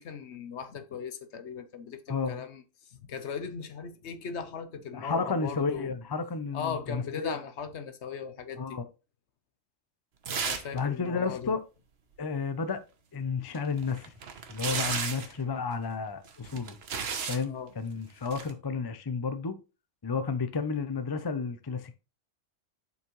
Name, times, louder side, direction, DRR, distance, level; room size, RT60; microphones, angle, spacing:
voice 1, 0.0-2.6 3.1-5.9 6.5-8.8 10.4-11.5 17.5-17.7, left 6 dB, 65° left, 1.1 m, -38 dB
voice 2, 2.1-2.5 4.9-7.4 8.6-8.8 10.7-11.6 12.2-12.8 13.1-14.1 14.5-16.8 17.3-19.6 20.0-21.9, left 4 dB, 30° left, 0.5 m, -32 dB
sound 1, 10.3-10.8 11.1-11.2 13.5-15.4 16.3-17.4 18.2-18.5, right 6 dB, 55° right, 1.1 m, -33 dB
7.1 x 5.5 x 3.1 m
omnidirectional pair, 1.3 m